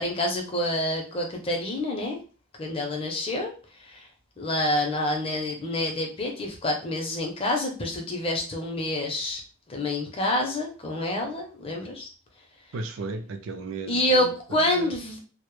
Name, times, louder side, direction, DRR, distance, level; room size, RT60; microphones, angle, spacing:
voice 1, 0.0-2.2 2.6-3.5 3.8-4.1 4.4-9.4 9.7-12.1 13.9-15.2, left 1 dB, 25° left, 0.5 m, -27 dB
voice 2, 12.7-14.9, right 3 dB, 75° right, 0.4 m, -35 dB
2.0 x 2.0 x 3.0 m
head